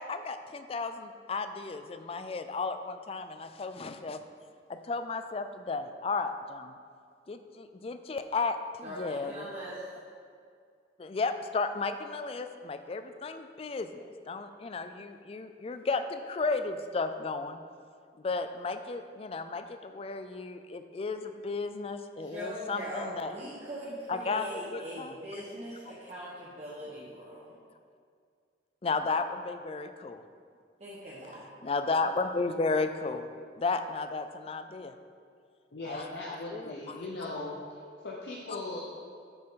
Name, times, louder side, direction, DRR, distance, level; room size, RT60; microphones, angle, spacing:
voice 1, 0.0-4.2 4.7-6.8 7.3-9.4 11.0-17.6 18.2-23.3 24.1-25.1 28.8-30.2 31.6-33.3 33.6-34.9 35.9-36.1 36.5-37.0 38.5-38.6, left 3 dB, 35° left, 9 dB, 0.3 m, -34 dB
voice 2, 8.8-9.9 22.2-27.5 30.8-31.4, equal, 40° right, -8 dB, 1.1 m, -41 dB
voice 3, 35.7-37.6 38.0-38.8, left 2 dB, 70° left, -3 dB, 0.8 m, -38 dB
7.7 x 6.5 x 3.8 m, 2.2 s
head